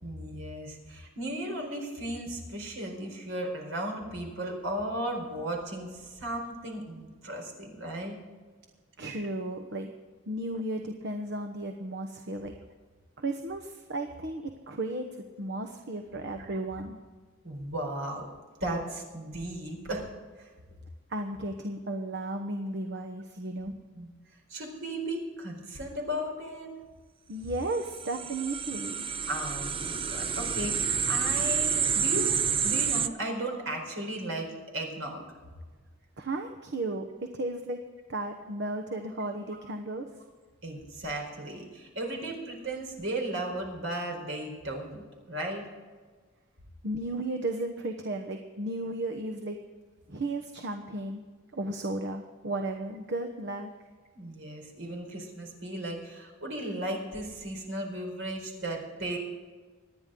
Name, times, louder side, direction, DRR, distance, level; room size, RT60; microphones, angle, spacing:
voice 1, 0.0-8.2 16.5-16.6 17.4-18.2 18.6-20.1 20.4-20.5 23.9-24.1 24.5-26.7 29.3-32.4 32.6-35.2 40.6-45.0 45.3-45.6 54.1-59.2, right 1 dB, 75° right, 1 dB, 4.4 m, -35 dB
voice 2, 9.0-9.9 10.3-12.5 13.2-15.1 15.4-17.0 21.1-23.7 27.3-29.0 36.2-37.8 38.1-40.1 46.8-49.6 50.1-51.2 51.5-53.7, right 2 dB, 60° right, 5 dB, 1.1 m, -34 dB
sound 1, 27.7-33.1, right 7 dB, 25° right, 0.6 m, -29 dB
25.5 x 10.0 x 3.8 m, 1.4 s
head